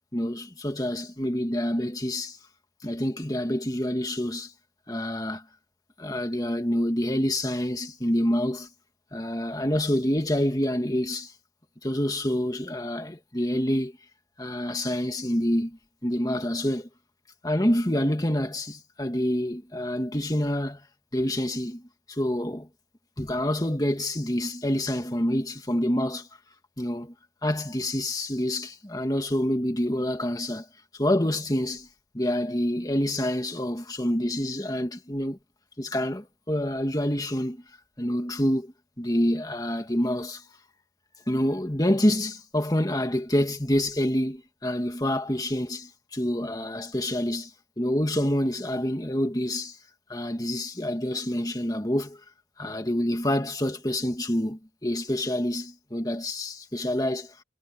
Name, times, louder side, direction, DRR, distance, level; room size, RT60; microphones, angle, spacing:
voice 1, 0.1-2.4 2.8-4.5 4.9-5.4 6.0-8.7 9.1-11.3 11.8-13.9 14.4-16.9 17.4-20.8 21.1-21.8 22.1-22.7 23.2-26.3 26.8-27.1 27.4-30.7 30.9-31.9 32.1-35.4 35.8-37.6 38.0-40.4 41.3-49.8 50.1-52.2 52.6-57.4, left 1 dB, 20° left, 2.1 m, -27 dB
head